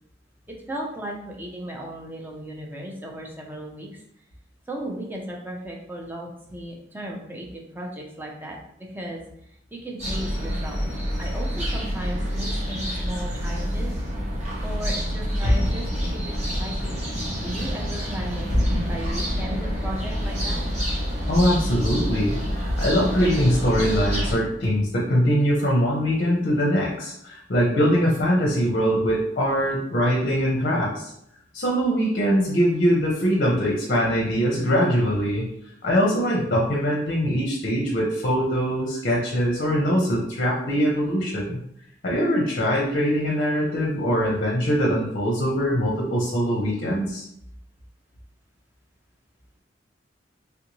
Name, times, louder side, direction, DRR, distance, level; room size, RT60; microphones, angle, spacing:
voice 1, 0.5-4.0 4.7-10.8 11.2-13.9 14.6-18.5 18.9-20.6 37.8-37.9, right 1 dB, 10° right, -1 dB, 0.6 m, -36 dB
sound 1, 10.0-24.3, equal, 40° right, 1.0 m, -27 dB
voice 2, 21.3-31.1 31.5-35.5 35.8-41.6 42.0-47.3, equal, 50° left, -2 dB, 0.6 m, -22 dB
3.4 x 2.6 x 3.0 m, 0.74 s
head